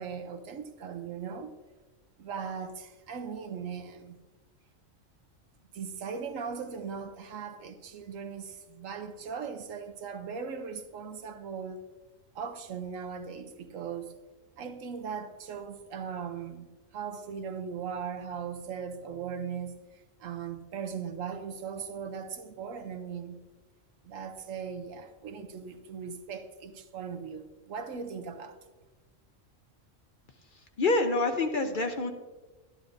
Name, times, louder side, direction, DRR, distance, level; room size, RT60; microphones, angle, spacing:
voice 1, 0.0-1.5 2.2-4.2 5.7-11.8 12.3-14.2 14.6-16.7 16.9-23.4 24.0-28.6, right 6 dB, 85° right, 1.2 m, -39 dB
voice 2, 30.8-32.1, left 2 dB, 50° left, 0.7 m, -26 dB
12.0 x 11.5 x 2.6 m
omnidirectional pair, 1.3 m